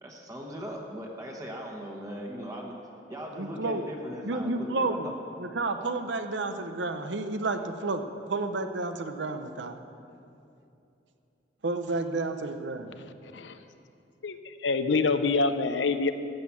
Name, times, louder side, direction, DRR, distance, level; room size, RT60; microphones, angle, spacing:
voice 1, 0.0-2.8 3.1-5.0, equal, 20° right, -1 dB, 1.2 m, -39 dB
voice 2, 3.4-3.8 4.2-9.7 11.6-13.0, right 3 dB, 80° right, 8 dB, 0.8 m, -31 dB
voice 3, 14.6-16.1, left 4 dB, 85° left, 10 dB, 0.7 m, -25 dB
14.0 x 8.4 x 7.2 m, 2.7 s
head